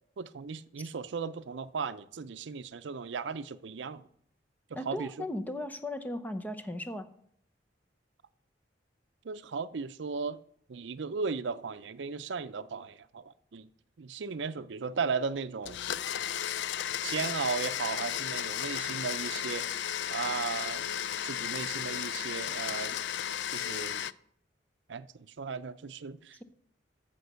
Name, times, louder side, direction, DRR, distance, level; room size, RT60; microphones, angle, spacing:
voice 1, 0.2-4.1 4.9-5.1 9.2-10.4 10.7-13.7 14.0-15.8 17.0-19.7 20.1-20.9 21.2-23.0 23.5-24.0 24.9-26.4, right 5 dB, 75° right, 0.5 m, -36 dB
voice 2, 4.7-7.1, left 1 dB, 10° left, 0.8 m, -37 dB
Domestic sounds home sounds, 15.7-24.1, left 10 dB, 70° left, 0.4 m, -34 dB
14.5 x 5.3 x 6.8 m
head